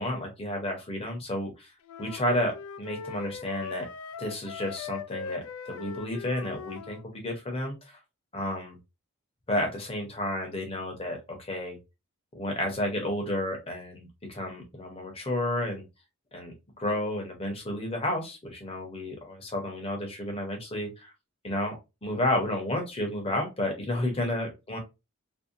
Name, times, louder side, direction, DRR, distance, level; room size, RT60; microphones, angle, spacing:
voice 1, 0.0-1.7 2.0-3.9 4.2-8.0 8.3-8.8 9.5-11.8 12.3-15.8 16.3-21.1 21.4-21.8 22.0-24.8, left 1 dB, 25° left, 2 dB, 0.7 m, -31 dB
sound 1, 1.8-7.0, left 5 dB, 85° left, 0.3 m, -40 dB
2.6 x 2.1 x 2.5 m, 0.25 s
head